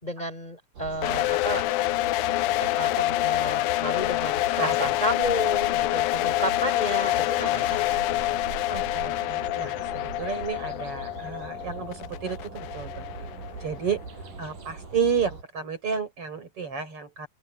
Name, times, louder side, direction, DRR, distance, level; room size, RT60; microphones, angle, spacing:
voice 1, 0.0-1.7 2.8-7.8 8.1-8.2, right 1 dB, 15° left, 3.7 m, -32 dB
sound 1, 0.7-15.4, right 4 dB, 90° right, 8.0 m, -41 dB
sound 2, 1.0-13.9, left 17 dB, 85° left, 2.1 m, -27 dB
voice 2, 8.7-13.1 13.6-14.0 14.4-17.3, right 6 dB, 45° right, 6.4 m, -31 dB
open air
omnidirectional pair, 3.6 m